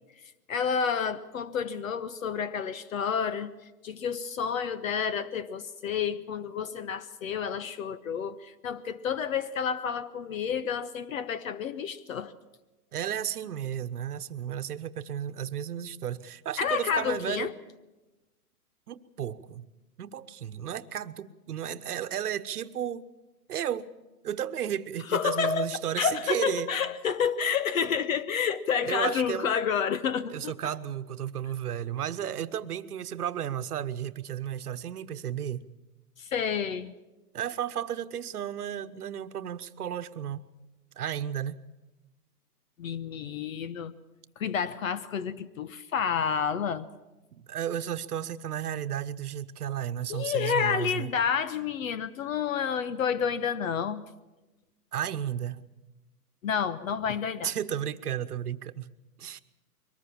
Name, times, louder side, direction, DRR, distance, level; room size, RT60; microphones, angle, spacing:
voice 1, 0.5-3.5 3.8-12.3 16.6-17.5 25.1-30.5 36.2-36.9 42.8-43.9 44.4-46.9 50.1-54.0 56.4-57.5, left 7 dB, 60° left, 1.1 m, -29 dB
voice 2, 12.9-17.5 18.9-19.7 20.0-23.1 23.5-23.9 24.2-26.7 28.8-29.5 30.3-35.6 37.3-40.4 41.0-41.6 47.4-51.1 54.9-55.6 57.4-58.9 59.2-59.4, right 10 dB, 70° right, 1.2 m, -33 dB
23.0 x 19.5 x 7.1 m
hypercardioid pair, 145°, 47 cm